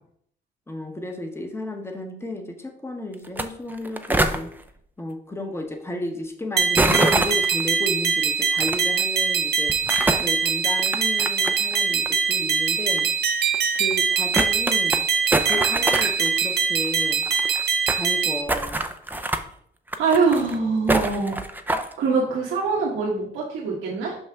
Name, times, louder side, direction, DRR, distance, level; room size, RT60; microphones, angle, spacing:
voice 1, 0.7-4.5 5.0-9.7 10.2-13.1 13.7-15.0 15.4-17.3 17.9-18.9, left 1 dB, 10° left, 4 dB, 1.0 m, -33 dB
sound 1, 3.2-3.4 3.7-4.4 6.8-7.6 8.6-8.8 9.7-10.3 10.8-11.8 12.1-12.2 13.0-13.1 13.5-13.6 13.9-14.0 14.3-15.0 15.3-16.3 16.6-16.7 16.8-16.9 17.1-18.0 18.5-19.4 19.9-20.6 20.9-21.9, right 2 dB, 10° right, 0.5 m, -24 dB
sound 2, 6.6-18.4, right 6 dB, 55° right, 0.7 m, -23 dB
voice 2, 20.0-21.4 22.0-24.2, right 4 dB, 85° right, -5 dB, 1.3 m, -23 dB
5.5 x 5.5 x 3.5 m, 0.65 s
cardioid pair, 90°, 20 cm